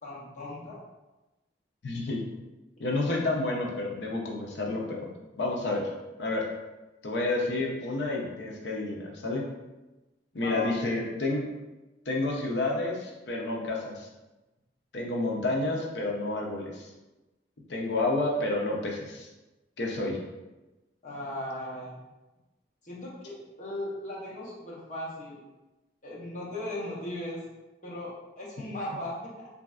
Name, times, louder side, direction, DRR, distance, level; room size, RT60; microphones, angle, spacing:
voice 1, 0.0-0.8 10.4-10.7 21.0-22.0 22.8-25.4 26.0-27.4 27.8-29.5, left 1 dB, 40° left, -6 dB, 0.8 m, -37 dB
voice 2, 1.8-2.2 2.8-5.1 5.4-5.8 6.2-6.4 7.0-9.4 10.3-11.4 12.1-14.1 14.9-16.9 17.7-19.3 19.8-20.2, left 2 dB, 70° left, -1 dB, 0.6 m, -30 dB
3.1 x 2.5 x 2.4 m, 1.1 s
head